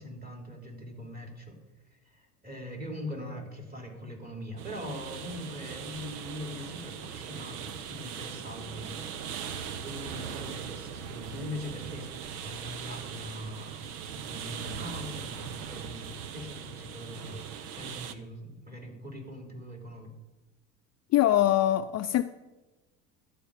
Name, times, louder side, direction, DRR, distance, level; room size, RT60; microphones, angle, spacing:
voice 1, 0.0-1.6 2.1-9.1 9.8-12.1 12.4-13.8 14.2-17.4 17.7-20.1, left 1 dB, 20° right, 1 dB, 3.4 m, -41 dB
sound 1, 4.6-18.1, right 7 dB, 85° right, 0.9 m, -40 dB
voice 2, 21.1-22.2, left 13 dB, 40° left, 9 dB, 0.5 m, -23 dB
12.0 x 5.2 x 8.4 m, 1.1 s
hypercardioid pair, 80°, 44 cm